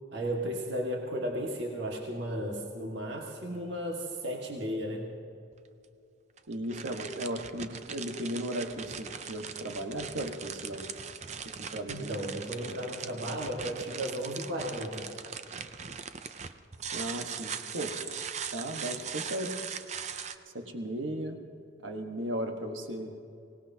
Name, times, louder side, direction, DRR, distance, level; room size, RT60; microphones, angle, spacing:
voice 1, 0.1-5.1 11.9-15.1, equal, 60° right, -1 dB, 1.7 m, -34 dB
sound 1, 5.5-5.6 6.4-20.4, right 7 dB, 35° right, 0.5 m, -40 dB
voice 2, 6.5-10.9 11.6-12.2 16.9-17.9 18.5-19.5 20.5-21.4 21.8-23.1, right 1 dB, 75° right, 4 dB, 1.4 m, -36 dB
24.0 x 18.0 x 2.8 m, 2.6 s
head